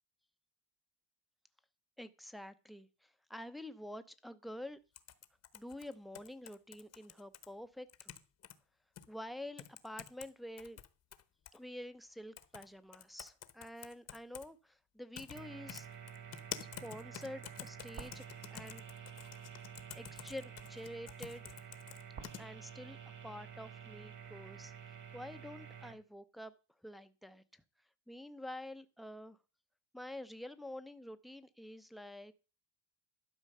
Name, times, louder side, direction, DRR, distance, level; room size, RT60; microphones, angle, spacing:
voice 1, 2.0-4.8 5.5-8.2 9.1-10.8 11.5-15.9 16.8-18.8 19.9-21.5 22.4-23.0 23.2-24.7 25.1-26.5 26.8-27.6 28.1-29.4 29.9-32.3, left 1 dB, ahead, 0.6 m, -48 dB
sound 1, 4.9-7.5 7.9-8.5 9.0-9.1 9.6-10.3 10.6-11.6 12.4-12.7 12.9-14.5 15.1-15.4 15.7-22.4, left 9 dB, 35° left, 1.0 m, -49 dB
sound 2, 15.3-25.9, right 8 dB, 40° right, 2.0 m, -50 dB
12.0 x 4.5 x 6.6 m
cardioid pair, 115°, 45 cm